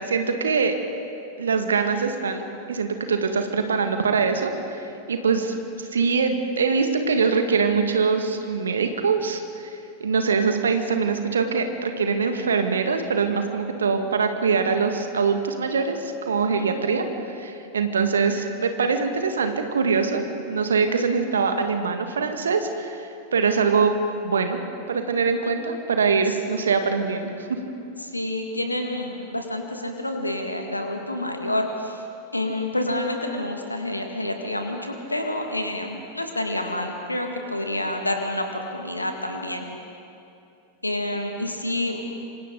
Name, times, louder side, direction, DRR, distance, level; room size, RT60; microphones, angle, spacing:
voice 1, 0.1-0.8 1.4-23.9 24.2-24.6 24.9-27.5, right 5 dB, 70° right, 6 dB, 1.8 m, -23 dB
voice 2, 16.5-16.9 26.3-26.4 28.0-32.0 32.3-39.7 40.8-42.0, left 1 dB, 85° left, 3 dB, 1.9 m, -28 dB
26.5 x 25.0 x 3.9 m, 2.6 s
figure-of-eight pair, 90°, 0 cm